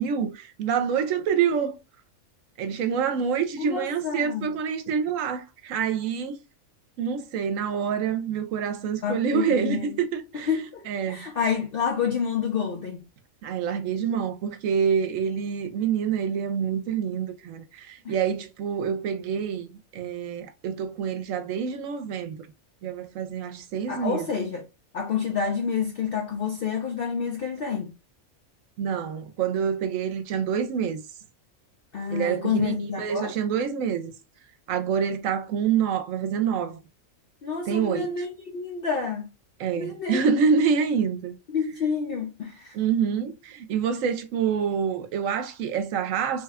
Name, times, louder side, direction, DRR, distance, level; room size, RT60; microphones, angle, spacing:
voice 1, 0.0-1.8 2.6-6.4 7.0-10.5 10.9-11.2 13.4-22.5 22.8-24.3 28.8-31.0 32.1-34.1 34.7-36.8 37.7-38.3 39.6-41.3 42.7-46.4, right 7 dB, 75° right, 1.0 m, -27 dB
voice 2, 3.6-4.5 9.0-9.9 10.5-13.0 18.0-18.1 23.9-24.6 24.9-27.9 31.9-33.3 37.4-39.3 39.8-40.2 41.5-42.8, left 6 dB, 60° left, 0.6 m, -28 dB
3.4 x 2.2 x 3.4 m
omnidirectional pair, 1.4 m